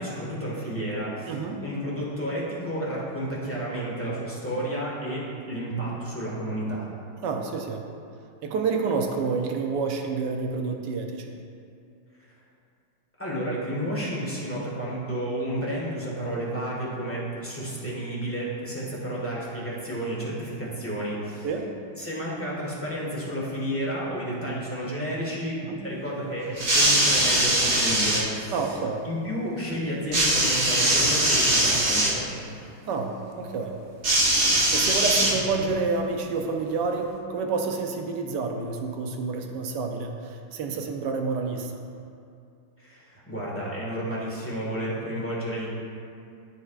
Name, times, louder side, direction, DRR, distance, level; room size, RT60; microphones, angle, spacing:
voice 1, 0.0-6.9 13.2-21.5 22.0-28.8 29.0-32.4 42.8-45.7, equal, 10° left, -6 dB, 1.2 m, -31 dB
voice 2, 1.3-1.7 7.2-7.9 8.4-11.3 21.4-21.8 25.6-25.8 28.5-29.1 32.9-33.8 34.7-41.8, right 4 dB, 70° right, 3 dB, 1.1 m, -29 dB
sound 1, 26.6-28.2 30.1-32.2 34.0-35.7 36.7-36.8, right 1 dB, 45° right, 1.4 m, -21 dB
12.5 x 4.7 x 2.4 m, 2.5 s
omnidirectional pair, 2.2 m